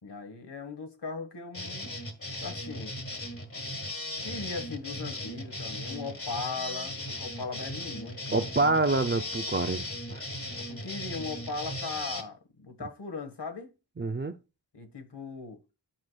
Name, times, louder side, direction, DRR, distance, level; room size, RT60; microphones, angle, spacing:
voice 1, 0.0-2.0 2.4-2.9 4.2-8.5 10.7-13.7 14.7-15.6, left 4 dB, 70° left, 1.3 m, -38 dB
sound 1, 1.5-12.2, left 1 dB, 30° left, 1.6 m, -37 dB
voice 2, 8.3-10.2 14.0-14.4, right 3 dB, 30° right, 0.4 m, -27 dB
10.5 x 4.7 x 2.2 m
wide cardioid pair, 45°, 43 cm